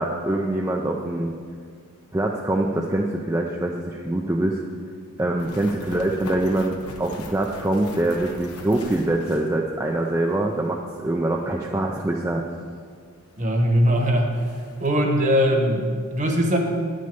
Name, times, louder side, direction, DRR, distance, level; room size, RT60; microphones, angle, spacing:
voice 1, 0.0-1.3 2.1-4.6 5.2-12.4, right 1 dB, 15° right, 0 dB, 0.4 m, -24 dB
sound 1, 5.4-10.0 10.3-10.4 13.4-13.5 13.8-13.9 14.2-14.9, left 2 dB, 85° left, 1.1 m, -41 dB
voice 2, 13.4-14.4 14.8-16.6, equal, 35° right, 2 dB, 1.2 m, -20 dB
9.8 x 6.4 x 6.8 m, 2.1 s
head